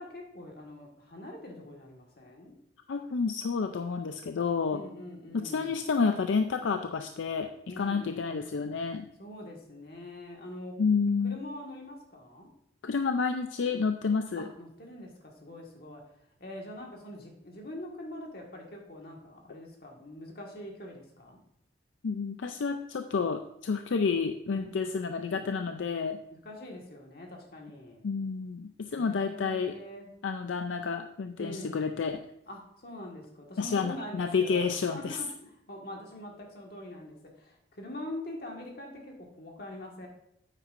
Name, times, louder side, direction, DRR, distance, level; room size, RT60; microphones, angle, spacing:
voice 1, 0.0-2.6 4.7-5.8 7.7-8.6 9.2-10.7 11.2-12.5 14.4-16.0 16.4-21.4 24.5-25.4 26.3-28.0 28.9-30.1 31.4-31.8 32.5-40.1, left 1 dB, 50° left, 0 dB, 1.7 m, -44 dB
voice 2, 2.9-4.8 5.3-9.1 10.8-11.4 12.8-14.5 22.0-26.2 28.0-29.7 30.2-32.2 33.6-35.2, left 5 dB, 80° left, 7 dB, 0.4 m, -30 dB
9.4 x 8.3 x 2.5 m, 0.77 s
head